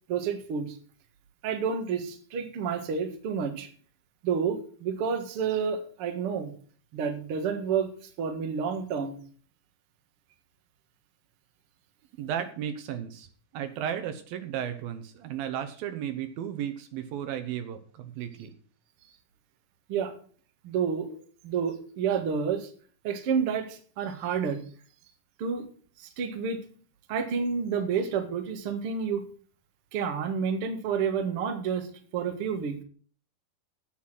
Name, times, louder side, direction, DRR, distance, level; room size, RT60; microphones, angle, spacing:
voice 1, 0.1-0.8 1.4-3.7 4.2-6.5 6.9-7.9 8.2-9.2 19.9-20.1 20.6-21.2 21.4-22.7 23.0-24.6 25.4-25.7 26.0-26.7 27.1-29.2 29.9-31.9 32.1-32.8, right 6 dB, 50° right, 6 dB, 1.9 m, -29 dB
voice 2, 12.2-13.3 13.5-18.5, right 9 dB, 75° right, 9 dB, 2.8 m, -34 dB
8.5 x 8.2 x 7.5 m, 0.43 s
omnidirectional pair, 4.3 m